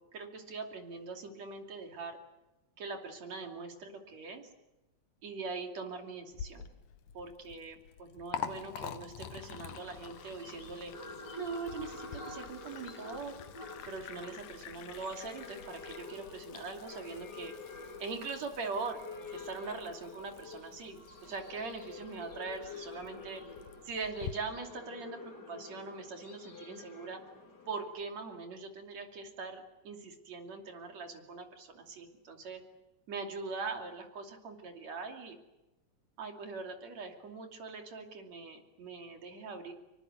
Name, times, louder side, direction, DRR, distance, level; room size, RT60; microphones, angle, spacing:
voice 1, 0.1-2.2 2.8-4.5 5.2-6.7 7.1-10.9 11.4-13.4 13.9-17.5 18.0-19.0 19.3-23.4 23.8-27.2 27.7-32.6 33.1-35.4 36.2-39.7, right 4 dB, 65° right, 4 dB, 4.0 m, -42 dB
Liquid, 6.3-24.3, left 8 dB, 90° left, 2.8 m, -47 dB
sound 1, 9.3-27.9, left 3 dB, 35° left, 3.6 m, -48 dB
25.5 x 23.5 x 8.1 m, 1.0 s
omnidirectional pair, 3.4 m